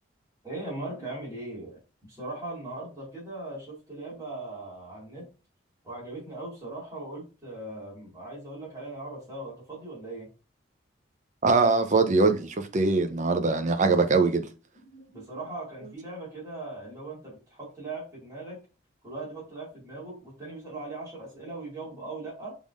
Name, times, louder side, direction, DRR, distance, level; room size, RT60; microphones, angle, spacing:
voice 1, 0.4-1.8 2.1-5.3 5.8-10.3 14.9-18.6 19.0-22.6, right 2 dB, 15° right, 2.3 m, -39 dB
voice 2, 11.4-14.5, right 3 dB, 35° right, 0.6 m, -22 dB
5.3 x 3.6 x 2.5 m
head